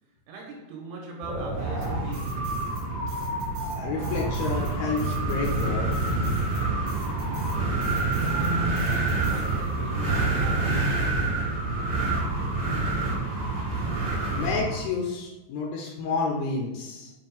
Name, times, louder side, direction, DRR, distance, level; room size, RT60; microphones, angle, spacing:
voice 1, 0.3-2.8 8.2-11.7, right 1 dB, 75° right, 3.0 m, -38 dB
Wind, 1.2-14.8, right 2 dB, 30° right, 1.2 m, -27 dB
sound 1, 1.8-2.8 3.1-9.9, right 4 dB, 60° right, 1.9 m, -49 dB
voice 2, 3.7-6.0 14.2-17.1, left 4 dB, 85° left, 2.2 m, -30 dB
7.5 x 2.5 x 5.4 m
omnidirectional pair, 5.1 m